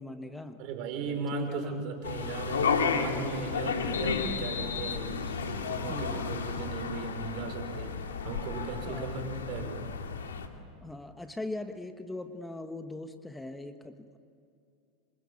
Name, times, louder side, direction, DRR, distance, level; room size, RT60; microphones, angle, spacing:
voice 1, 0.0-0.7 1.3-1.9 5.9-6.3 8.9-9.2 10.8-14.2, left 2 dB, 10° left, 7 dB, 1.4 m, -40 dB
voice 2, 0.6-5.2 5.4-8.0 8.2-9.9, right 4 dB, 55° right, 6 dB, 5.2 m, -37 dB
sound 1, 2.0-10.5, left 5 dB, 85° left, 2.3 m, -32 dB
27.0 x 25.5 x 8.7 m, 2.5 s
hypercardioid pair, 95°, 0 cm